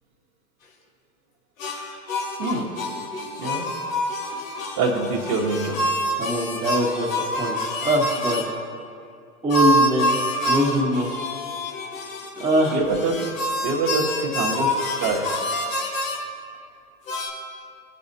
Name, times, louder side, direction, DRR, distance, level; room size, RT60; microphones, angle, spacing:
sound 1, 1.6-8.5 9.5-16.2 17.1-17.3, left 1 dB, 65° left, 1.5 m, -27 dB
voice 1, 2.4-2.7 3.4-3.7 4.8-5.8 12.7-13.4 13.6-15.2, right 3 dB, 45° right, -7 dB, 1.5 m, -25 dB
voice 2, 6.1-7.1 7.3-7.6 7.8-8.4 9.4-10.1 10.4-11.1 12.4-12.8, right 1 dB, 15° right, -9 dB, 1.6 m, -22 dB
16.0 x 5.6 x 2.7 m, 2.4 s
figure-of-eight pair, 95°, 43 cm